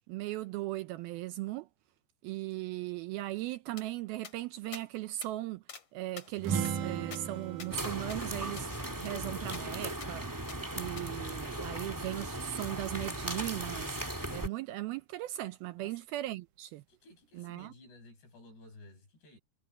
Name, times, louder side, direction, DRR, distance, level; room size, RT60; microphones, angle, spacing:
voice 1, 0.1-1.7 2.2-5.6 5.9-8.7 9.0-10.3 10.7-14.0 14.3-16.8 17.3-17.7, right 16 dB, 80° right, 2.3 m, -38 dB
sound 1, 3.8-3.9 4.2-4.4 4.7-4.9 5.2-5.3 5.7-5.9 6.2-7.8 8.1-8.2 8.6-8.7 9.1-9.2 9.5-9.6 10.0-10.1 10.5-10.6 11.0-11.1, left 6 dB, 40° left, 3.0 m, -48 dB
sound 2, 6.4-10.1, right 8 dB, 60° right, 2.6 m, -38 dB
sound 3, 7.7-14.5, right 1 dB, 15° right, 0.8 m, -38 dB
voice 2, 16.9-19.4, left 2 dB, 80° left, 10.0 m, -55 dB
omnidirectional pair, 4.8 m